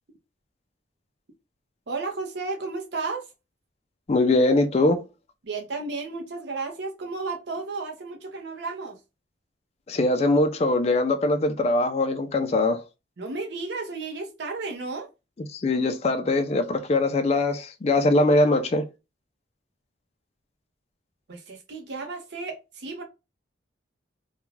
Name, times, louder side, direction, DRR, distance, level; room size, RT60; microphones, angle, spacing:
voice 1, 1.9-3.2 5.4-9.0 13.2-15.1 21.3-23.0, right 3 dB, 60° right, 0.6 m, -33 dB
voice 2, 4.1-5.0 9.9-12.8 15.5-18.9, left 2 dB, 30° left, 0.3 m, -22 dB
2.4 x 2.2 x 3.0 m
head